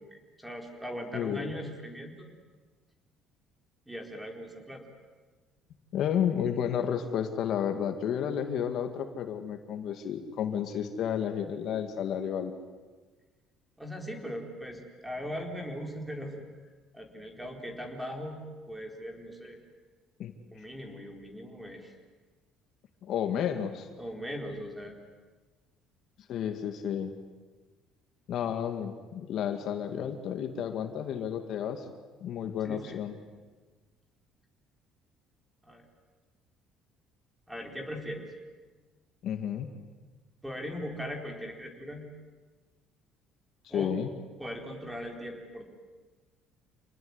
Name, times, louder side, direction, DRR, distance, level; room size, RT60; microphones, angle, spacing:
voice 1, 0.0-2.3 3.9-4.9 13.8-16.3 16.9-19.6 20.5-21.9 24.0-25.0 32.6-33.0 35.6-35.8 37.5-38.3 40.4-42.1 43.7-44.0 44.4-45.6, equal, 5° right, 3 dB, 4.3 m, -39 dB
voice 2, 1.1-1.5 5.9-12.5 20.2-20.3 23.0-23.9 26.3-27.1 28.3-31.9 32.2-33.2 39.2-39.7 43.6-44.1, left 8 dB, 60° left, 6 dB, 2.2 m, -31 dB
28.0 x 20.0 x 9.7 m, 1.3 s
cardioid pair, 135°, 0 cm